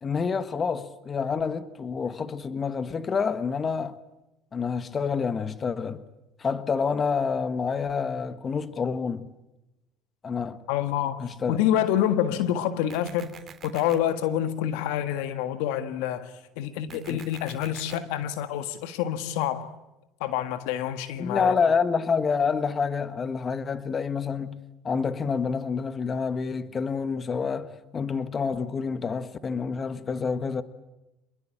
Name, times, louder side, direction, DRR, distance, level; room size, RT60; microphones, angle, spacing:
voice 1, 0.0-4.0 4.5-6.0 6.4-9.3 10.2-10.6 11.2-11.6 17.1-17.2 21.2-30.6, left 5 dB, 35° left, 1.5 m, -28 dB
voice 2, 10.7-13.3 13.6-16.3 16.6-19.7 20.2-21.5, left 11 dB, 80° left, 1.7 m, -27 dB
sound 1, 12.9-13.9 16.9-17.9, right 7 dB, 35° right, 3.7 m, -46 dB
27.0 x 22.0 x 8.9 m
supercardioid pair, 85°, 0 cm